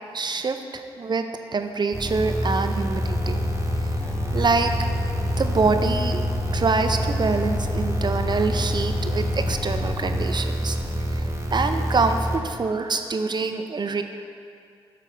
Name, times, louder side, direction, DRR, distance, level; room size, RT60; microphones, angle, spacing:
voice 1, 0.1-3.5 4.3-4.7 5.4-6.2 6.5-10.8 11.2-11.3 11.5-14.0, right 4 dB, 45° right, 7 dB, 0.5 m, -25 dB
sound 1, 1.9-12.4, equal, 25° right, 1.0 m, -27 dB
sound 2, 3.0-10.3, left 3 dB, 30° left, 0.4 m, -32 dB
7.0 x 3.4 x 5.8 m, 2.3 s
cardioid pair, 55°, 11 cm